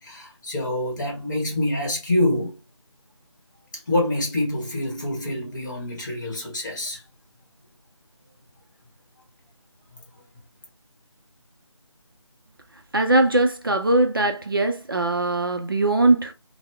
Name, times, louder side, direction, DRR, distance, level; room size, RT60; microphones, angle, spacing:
voice 1, 0.0-2.6 3.9-7.0, left 1 dB, 35° left, 1.2 m, -26 dB
voice 2, 12.9-16.3, right 2 dB, 45° right, 0.4 m, -20 dB
2.7 x 2.0 x 3.3 m
figure-of-eight pair, 165°, 16 cm